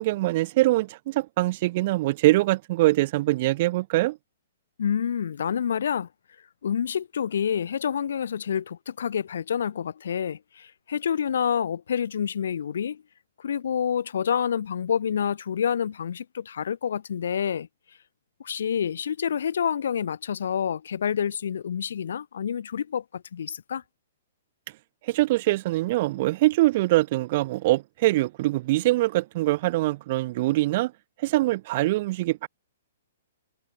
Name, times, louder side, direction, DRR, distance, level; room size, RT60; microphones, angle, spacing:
voice 1, 0.0-4.2 25.1-30.9 31.2-32.5, right 18 dB, 40° right, 5.0 m, -23 dB
voice 2, 4.8-6.1 6.6-13.0 13.4-17.7 18.4-23.8, left 8 dB, 60° left, 2.4 m, -28 dB
figure-of-eight pair, 115°, 0 cm